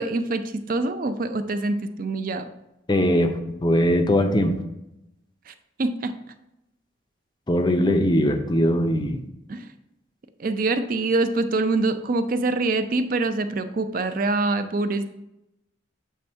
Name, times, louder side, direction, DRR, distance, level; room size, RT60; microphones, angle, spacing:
voice 1, 0.0-2.5 5.5-5.6 5.8-6.1 9.5-9.7 10.4-15.0, right 2 dB, 45° right, 9 dB, 0.4 m, -25 dB
voice 2, 2.9-4.6 7.5-9.2, equal, 20° left, 6 dB, 0.5 m, -21 dB
7.4 x 3.4 x 4.3 m, 0.89 s
head